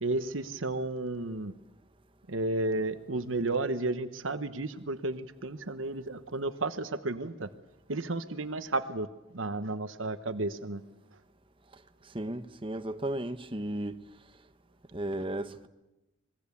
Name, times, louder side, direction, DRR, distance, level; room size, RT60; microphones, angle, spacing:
voice 1, 0.0-1.5 2.3-7.5 7.9-10.8 11.1-11.2, right 2 dB, 85° right, 1.2 m, -33 dB
voice 2, 12.0-14.0 14.9-15.7, right 1 dB, 25° right, 1.1 m, -35 dB
26.5 x 21.0 x 8.5 m
head